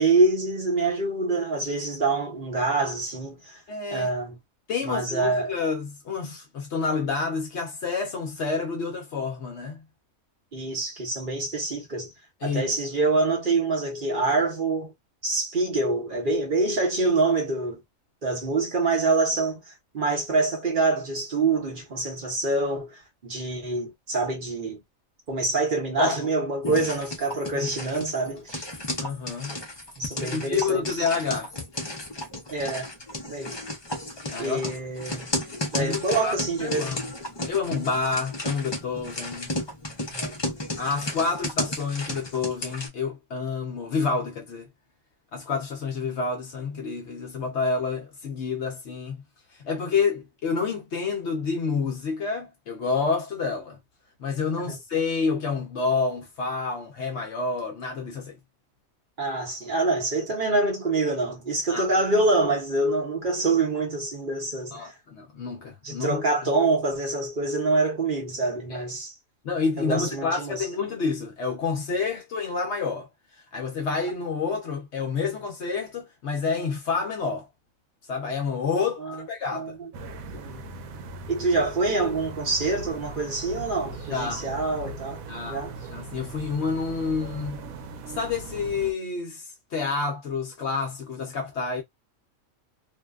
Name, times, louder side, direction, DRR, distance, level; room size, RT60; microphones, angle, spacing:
voice 1, 0.0-3.6 3.9-4.4 4.8-5.5 10.5-12.1 12.4-14.9 15.2-17.8 18.2-19.6 19.9-24.8 25.3-28.7 30.0-31.1 32.5-32.9 33.3-33.6 34.4-35.3 35.7-36.9 40.1-40.4 54.7-54.8 59.2-64.9 65.8-69.1 69.8-70.6 79.0-79.2 79.5-79.9 80.3-80.7 81.3-85.2 85.5-85.7, right 3 dB, 45° right, 0.9 m, -26 dB
voice 2, 3.7-4.1 4.7-9.8 12.4-12.7 26.0-26.2 27.5-27.7 29.0-29.6 30.2-31.5 34.3-34.7 35.8-36.3 36.6-37.1 37.5-39.6 40.8-44.7 45.3-49.2 49.5-53.8 54.2-58.4 61.7-61.9 64.7-66.2 68.7-68.8 69.4-73.1 73.5-77.5 78.1-79.8 84.1-84.5 85.3-87.7 88.1-91.8, left 4 dB, 60° left, 0.9 m, -28 dB
sound 1, 26.6-42.9, left 1 dB, 35° left, 0.4 m, -34 dB
sound 2, 79.9-88.9, right 3 dB, 85° right, 1.0 m, -39 dB
2.6 x 2.1 x 2.3 m
omnidirectional pair, 1.4 m